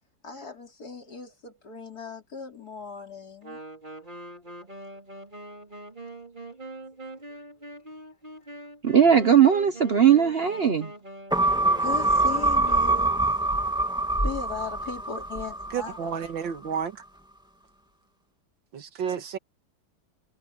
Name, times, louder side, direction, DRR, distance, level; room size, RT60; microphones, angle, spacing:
voice 1, 0.2-3.6 11.8-13.1 14.2-16.0, left 5 dB, 50° left, 4.0 m, -37 dB
Wind instrument woodwind instrument, 3.4-13.3, right 2 dB, 25° right, 4.3 m, -43 dB
voice 2, 8.8-10.9, right 8 dB, 50° right, 0.7 m, -19 dB
sound 1, 11.3-16.0 16.4-16.5, right 2 dB, ahead, 2.1 m, -24 dB
voice 3, 15.7-17.0 18.7-19.4, right 7 dB, 70° right, 2.2 m, -31 dB
omnidirectional pair, 2.1 m